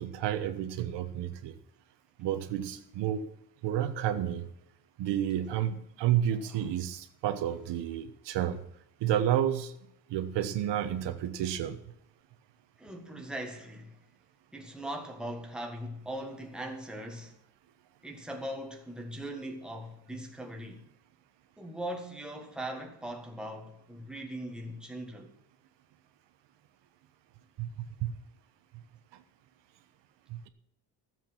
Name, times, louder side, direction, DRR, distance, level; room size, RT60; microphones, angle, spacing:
voice 1, 0.0-1.5 2.2-3.2 3.6-4.4 5.0-8.6 9.0-9.7 10.1-11.8 27.6-28.1 30.3-30.5, right 11 dB, 80° right, 1.3 m, -30 dB
voice 2, 6.3-6.7 12.8-14.0 14.5-17.4 18.0-20.9 21.6-25.3, right 1 dB, ahead, 1.6 m, -40 dB
13.5 x 7.8 x 6.0 m
cardioid pair, 165°, 41 cm